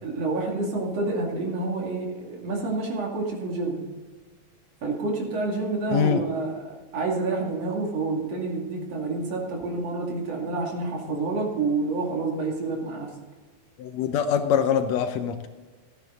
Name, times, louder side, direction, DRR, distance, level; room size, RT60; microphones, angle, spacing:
voice 1, 0.0-3.8 4.8-6.5 6.9-13.1, right 3 dB, 60° right, -1 dB, 3.4 m, -28 dB
voice 2, 5.9-6.2 13.8-15.5, left 8 dB, 75° left, 8 dB, 1.8 m, -24 dB
14.5 x 10.5 x 3.9 m, 1.4 s
omnidirectional pair, 3.4 m